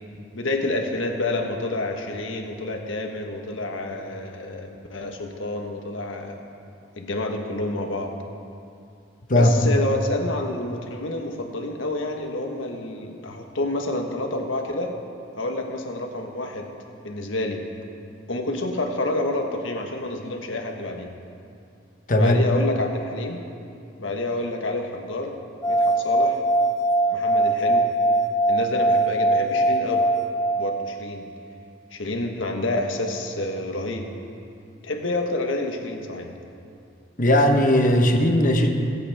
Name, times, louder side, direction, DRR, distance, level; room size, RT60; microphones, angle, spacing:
voice 1, 0.3-6.4 7.0-8.1 9.3-14.9 15.4-16.7 17.0-17.6 18.3-21.1 22.2-23.4 24.0-25.4 25.7-26.4 27.1-27.8 28.5-30.1 30.6-31.3 31.9-34.1 34.8-36.4, left 2 dB, 80° left, 2 dB, 1.4 m, -28 dB
voice 2, 22.1-22.4 37.2-38.7, left 1 dB, 45° left, 4 dB, 1.1 m, -18 dB
sound 1, 25.6-31.1, right 1 dB, 15° left, 0.3 m, -21 dB
21.5 x 8.2 x 3.6 m, 2.5 s
head